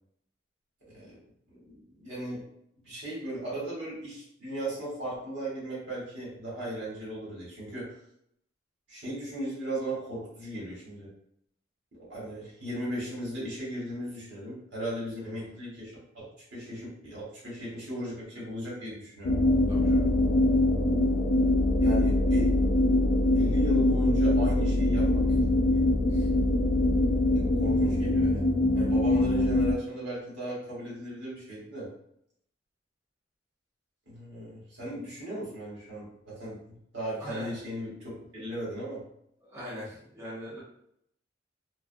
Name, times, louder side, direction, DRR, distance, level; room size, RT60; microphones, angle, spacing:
voice 1, 0.9-1.2 1.5-2.4 2.8-7.9 8.9-11.1 12.1-16.2 16.5-19.4 21.8-22.5 23.3-25.2 26.9-27.2 27.4-28.5 28.7-31.9 34.1-39.0, right 1 dB, 65° right, -7 dB, 1.3 m, -37 dB
sound 1, 19.2-29.7, left 1 dB, 75° left, 0.3 m, -23 dB
voice 2, 19.7-20.0 26.1-26.4 37.2-37.6 39.4-40.6, equal, 15° right, -9 dB, 0.8 m, -41 dB
2.5 x 2.3 x 2.5 m, 0.74 s
head